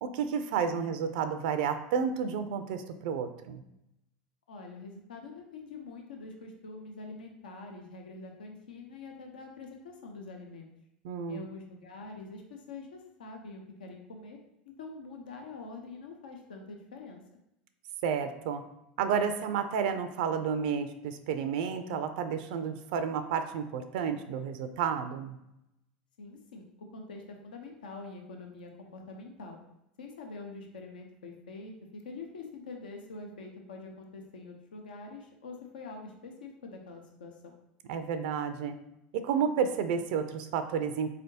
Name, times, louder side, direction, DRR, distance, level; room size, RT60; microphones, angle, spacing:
voice 1, 0.0-3.6 11.0-11.5 18.0-18.6 19.0-25.4 37.9-38.8 39.2-41.1, right 7 dB, 65° right, 9 dB, 0.4 m, -31 dB
voice 2, 0.5-1.0 4.5-10.7 11.3-14.4 14.7-17.2 26.2-29.6 30.0-37.6, left 3 dB, 85° left, 3 dB, 0.6 m, -45 dB
3.7 x 3.3 x 2.7 m, 0.84 s
hypercardioid pair, 90°, 5 cm